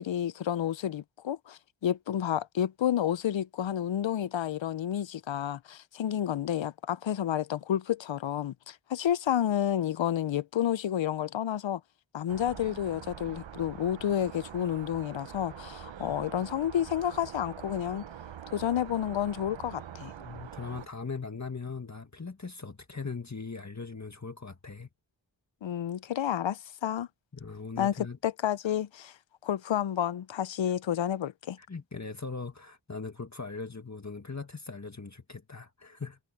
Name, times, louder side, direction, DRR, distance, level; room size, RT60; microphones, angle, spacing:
voice 1, 0.0-11.8 12.1-18.0 18.5-20.1 25.6-27.1 27.8-27.9 28.2-29.2 29.4-31.6, left 10 dB, 90° left, 0.6 m, -30 dB
sound 1, 12.3-20.9, right 9 dB, 90° right, 0.8 m, -45 dB
voice 2, 20.2-24.9 27.3-28.2 31.6-36.2, left 4 dB, 40° left, 1.8 m, -40 dB
wide cardioid pair, 50°, 44 cm